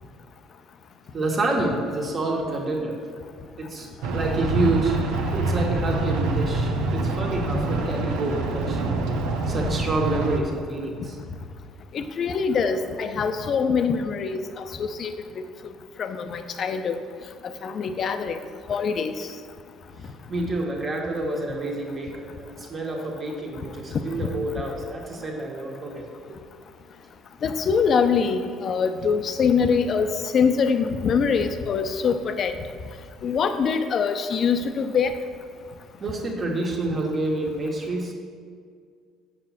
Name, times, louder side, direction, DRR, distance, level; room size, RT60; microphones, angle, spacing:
voice 1, 1.1-3.0 3.6-8.8 9.5-11.2 20.3-26.4 36.0-38.1, right 2 dB, 40° right, 0 dB, 1.8 m, -28 dB
sound 1, 4.0-10.4, right 2 dB, 80° right, 0.8 m, -26 dB
voice 2, 11.9-15.1 16.0-17.0 17.6-18.4 18.7-19.1 27.4-32.6 33.2-35.2, left 6 dB, 50° left, 8 dB, 0.7 m, -24 dB
7.6 x 6.1 x 5.9 m, 2.1 s
supercardioid pair, 70°, 0 cm